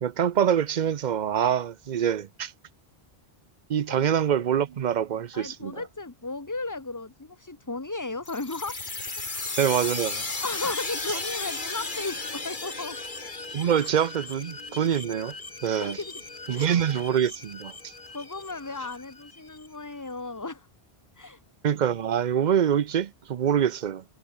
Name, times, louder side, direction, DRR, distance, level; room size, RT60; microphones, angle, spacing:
voice 1, 0.0-2.5 3.7-5.7 9.6-10.2 13.5-15.3 15.6-16.0 16.5-17.7 21.6-24.0, right 9 dB, 50° right, 0.7 m, -25 dB
voice 2, 5.3-8.8 9.1-9.4 10.4-13.0 13.6-13.9 15.7-16.2 16.5-16.9 18.1-20.7 21.2-21.4, left 3 dB, 20° left, 1.1 m, -35 dB
sound 1, 8.3-19.7, left 3 dB, 50° left, 2.4 m, -36 dB
omnidirectional pair, 1.1 m